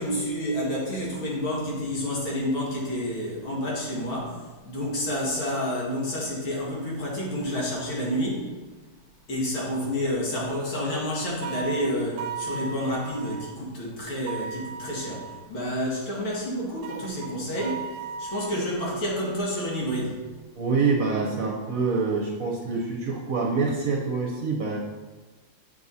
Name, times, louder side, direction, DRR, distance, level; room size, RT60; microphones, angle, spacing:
voice 1, 0.0-4.4 4.6-8.5 9.3-17.9 18.2-20.2, equal, 75° left, -5 dB, 3.1 m, -29 dB
sound 1, 11.4-13.5 14.3-15.5 16.8-19.0, right 5 dB, 75° right, 1.2 m, -37 dB
voice 2, 20.6-24.8, right 4 dB, 55° right, 0 dB, 1.1 m, -26 dB
8.3 x 6.5 x 4.1 m, 1.3 s
omnidirectional pair, 2.2 m